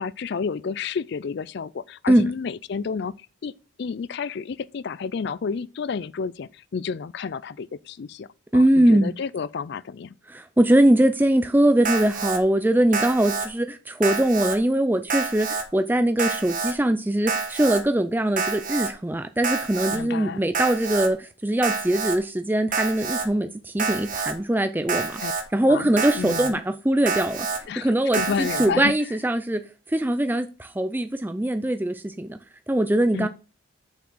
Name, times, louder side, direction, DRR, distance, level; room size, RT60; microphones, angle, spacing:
voice 1, 0.0-3.5 3.8-8.3 8.5-10.1 19.9-20.5 25.2-25.3 25.7-26.6 27.7-28.9 33.1-33.3, left 5 dB, 55° left, 0.4 m, -31 dB
voice 2, 8.5-9.1 10.3-25.2 25.5-29.6 29.9-32.4 32.7-33.3, right 1 dB, 10° right, 0.4 m, -22 dB
Alarm, 11.8-12.4 12.9-13.5 14.0-14.6 15.1-15.6 16.2-16.7 17.3-17.8 18.4-18.9 19.4-20.0 20.5-21.1 21.6-22.2 22.7-23.3 23.8-24.3 24.9-25.4 26.0-26.5 27.1-27.6 28.1-28.7, right 4 dB, 40° right, 1.4 m, -27 dB
7.4 x 6.0 x 6.2 m
head